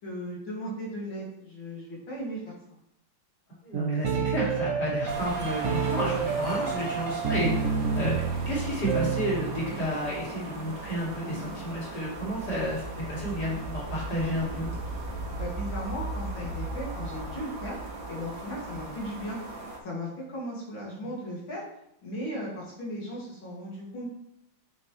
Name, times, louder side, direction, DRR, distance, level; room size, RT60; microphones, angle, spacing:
voice 1, 0.0-2.4 6.7-6.9 15.4-17.8 18.1-19.4 19.8-21.6 22.0-24.1, equal, 90° left, -5 dB, 3.4 m, -36 dB
voice 2, 3.6-7.7 7.9-14.7, equal, 55° left, -5 dB, 3.3 m, -32 dB
sound 1, 3.7-9.8, right 6 dB, 55° right, 1.0 m, -29 dB
sound 2, 5.1-19.8, right 2 dB, 80° right, 2.1 m, -37 dB
8.2 x 6.2 x 3.3 m, 0.78 s
omnidirectional pair, 2.1 m